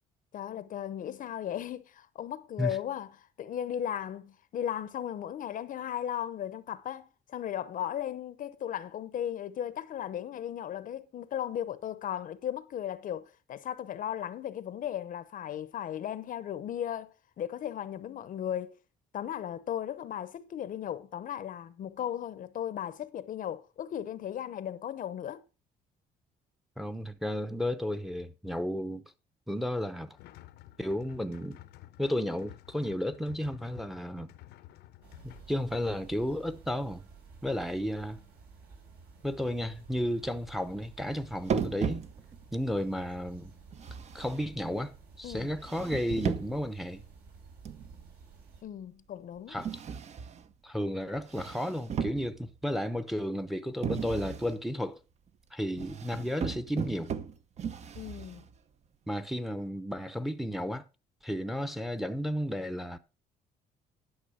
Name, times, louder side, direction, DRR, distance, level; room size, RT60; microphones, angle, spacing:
voice 1, 0.3-18.8 19.1-25.4 45.2-45.5 48.6-49.6 58.0-58.5, left 10 dB, 55° left, 0.8 m, -36 dB
voice 2, 26.8-29.0 29.5-30.2 30.8-31.6 32.0-34.3 35.2-37.1 37.4-38.2 39.2-42.1 42.5-43.5 44.1-44.9 45.2-47.0 49.5-49.7 50.6-55.0 55.5-57.1 59.1-60.8 61.2-63.0, equal, ahead, 0.8 m, -33 dB
sound 1, 30.1-35.8, left 14 dB, 80° left, 0.8 m, -52 dB
sound 2, 35.0-48.6, right 5 dB, 70° right, 4.9 m, -53 dB
sound 3, 41.5-42.5 43.7-44.9 45.6-46.7 47.7-48.1 49.6-50.5 51.2-52.6 53.8-54.6 55.8-58.6, right 7 dB, 40° right, 0.8 m, -36 dB
11.5 x 6.0 x 4.9 m
cardioid pair, 110°, 17 cm